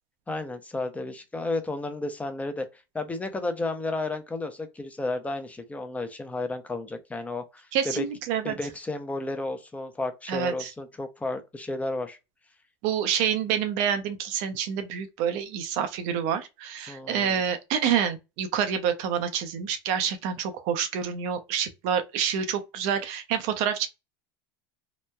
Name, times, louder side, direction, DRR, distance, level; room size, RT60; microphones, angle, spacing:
voice 1, 0.3-2.7 2.9-8.1 8.4-12.2 16.9-17.4, left 2 dB, 10° left, 0.6 m, -32 dB
voice 2, 7.7-8.5 10.3-10.7 12.8-23.9, right 8 dB, 60° right, 0.6 m, -27 dB
2.9 x 2.1 x 2.2 m
hypercardioid pair, 100°, 13 cm